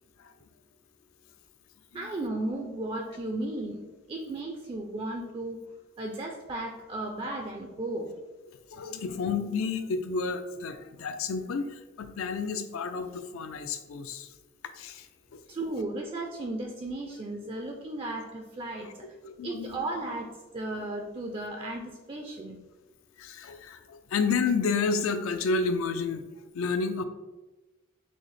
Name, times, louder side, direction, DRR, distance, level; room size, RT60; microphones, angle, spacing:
voice 1, 1.9-3.8 4.1-5.6 6.0-8.1 15.5-19.1 19.4-22.6, right 2 dB, 25° right, 2 dB, 0.3 m, -35 dB
voice 2, 8.7-14.3 14.7-15.4 18.8-18.9 19.2-19.8 23.2-26.2 26.5-27.0, left 4 dB, 75° left, 8 dB, 0.4 m, -31 dB
6.0 x 2.0 x 3.2 m, 1.1 s
head